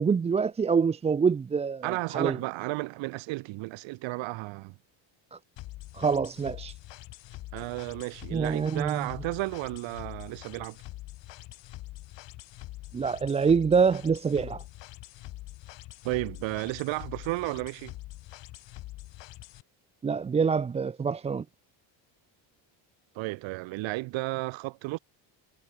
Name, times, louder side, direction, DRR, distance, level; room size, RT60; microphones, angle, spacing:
voice 1, 0.0-2.4 5.3-5.4 5.9-6.7 8.3-9.1 12.9-14.6 20.0-21.4, right 5 dB, 15° right, 0.4 m, -26 dB
voice 2, 1.8-4.7 7.5-10.8 16.0-17.9 23.1-25.0, right 22 dB, 70° right, 1.2 m, -33 dB
sound 1, 5.6-19.6, left 17 dB, 65° left, 3.5 m, -44 dB
cardioid pair, 145°, 47 cm